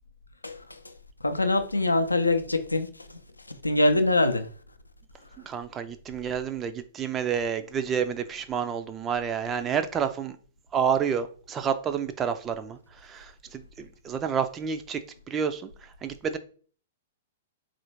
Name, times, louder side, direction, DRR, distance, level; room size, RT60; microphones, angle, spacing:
voice 1, 0.4-0.9 1.2-4.5, left 2 dB, 80° left, 0.4 m, -25 dB
voice 2, 5.5-10.4 10.7-12.8 13.1-15.0 15.3-15.7 16.0-16.4, right 7 dB, 20° right, 0.4 m, -29 dB
4.1 x 2.4 x 2.9 m
figure-of-eight pair, 105°, 0 cm